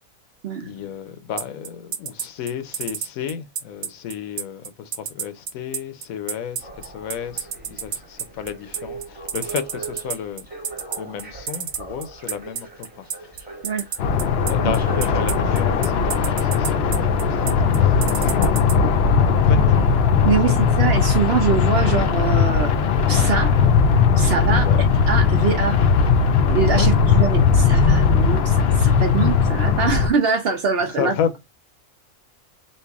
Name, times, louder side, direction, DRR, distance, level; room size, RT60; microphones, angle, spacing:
voice 1, 0.6-10.5 11.0-13.3 14.3-17.5 17.8-18.7 19.1-19.9 20.4-20.6 24.6-24.9 26.7-26.9 31.0-31.3, left 8 dB, 85° left, 1.1 m, -32 dB
sound 1, 1.4-18.7, right 8 dB, 85° right, 1.2 m, -29 dB
sound 2, 6.6-18.2 18.9-19.0, right 3 dB, 5° right, 1.1 m, -39 dB
sound 3, 14.0-30.1, left 6 dB, 60° left, 0.7 m, -18 dB
voice 2, 20.2-22.7 23.0-23.5 24.2-24.7 25.1-25.8 26.4-31.1, right 6 dB, 60° right, 0.6 m, -23 dB
3.2 x 2.5 x 3.4 m
omnidirectional pair, 1.4 m